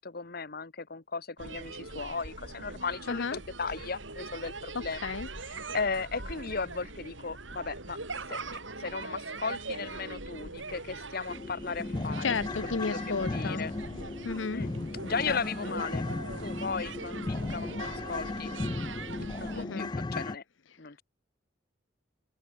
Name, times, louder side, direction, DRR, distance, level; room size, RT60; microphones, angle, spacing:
voice 1, 0.0-5.1 5.7-8.0 8.3-8.4 8.8-12.3 12.9-13.7 14.5-14.7 15.0-16.0 16.4-18.5 19.4-20.4 20.8-21.0, left 4 dB, 55° left, 1.2 m, -36 dB
sound 1, 1.4-19.7, right 3 dB, 90° right, 6.7 m, -42 dB
voice 2, 3.1-3.4 4.7-5.3 12.2-13.7 14.2-14.6 15.3-15.7 19.6-19.9, left 5 dB, 90° left, 0.8 m, -33 dB
sound 2, 10.4-10.5 10.9-11.0 11.3-20.4, left 2 dB, 25° left, 0.4 m, -36 dB
head